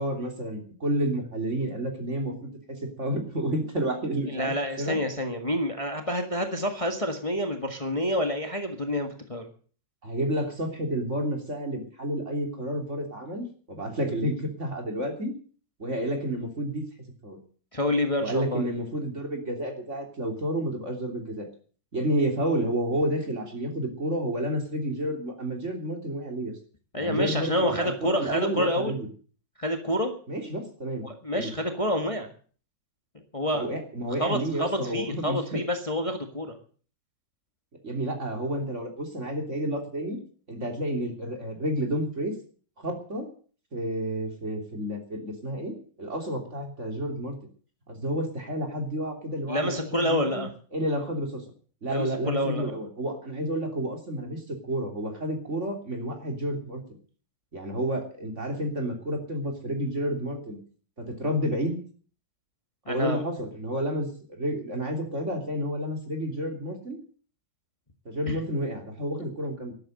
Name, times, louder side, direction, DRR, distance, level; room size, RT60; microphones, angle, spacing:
voice 1, 0.0-5.0 10.0-15.3 15.8-16.9 17.2-17.4 18.2-21.5 21.9-26.5 27.0-29.1 30.3-31.1 31.3-31.5 33.5-35.6 37.8-40.2 40.5-42.3 42.8-43.3 43.7-47.4 47.9-50.4 50.7-51.4 51.8-57.0 57.5-60.6 61.0-61.8 62.9-67.0 68.1-69.7, right 1 dB, 40° right, 3 dB, 3.5 m, -30 dB
voice 2, 4.3-9.5 17.7-18.7 26.9-28.9 29.6-30.1 31.0-32.3 33.1-33.7 34.2-36.6 49.5-50.5 51.9-52.7 62.9-63.2 68.3-68.4, left 1 dB, 20° left, 5 dB, 1.7 m, -28 dB
13.0 x 11.5 x 7.8 m, 0.43 s
omnidirectional pair, 1.9 m